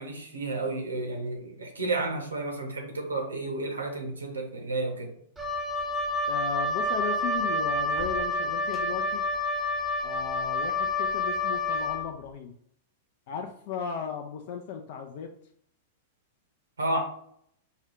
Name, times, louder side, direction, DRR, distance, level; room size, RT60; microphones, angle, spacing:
voice 1, 0.0-5.1 16.8-17.0, right 2 dB, 75° right, 3 dB, 0.9 m, -31 dB
Wind instrument woodwind instrument, 5.4-12.1, left 2 dB, 10° right, 0.8 m, -28 dB
voice 2, 6.3-9.2 10.0-12.5 13.3-15.3, left 7 dB, 50° left, 4 dB, 0.4 m, -36 dB
4.4 x 2.3 x 3.6 m, 0.68 s
figure-of-eight pair, 95°, 0 cm